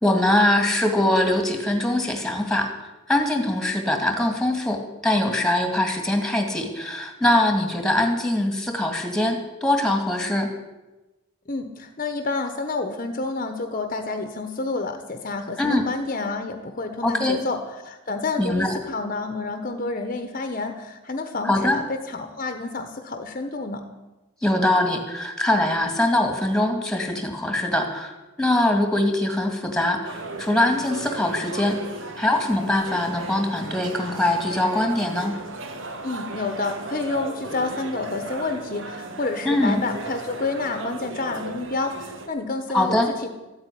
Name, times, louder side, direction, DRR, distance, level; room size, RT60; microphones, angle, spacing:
voice 1, 0.0-2.7 3.1-10.5 15.6-15.8 17.0-17.4 18.4-18.8 21.4-21.8 24.4-28.1 28.4-35.3 39.4-39.8 42.7-43.1, left 1 dB, 5° left, 4 dB, 2.2 m, -22 dB
voice 2, 11.5-23.8 36.0-43.3, left 3 dB, 40° left, 7 dB, 1.1 m, -29 dB
sound 1, 30.0-42.3, right 2 dB, 65° right, 1.6 m, -36 dB
14.0 x 8.8 x 10.0 m, 1.1 s
head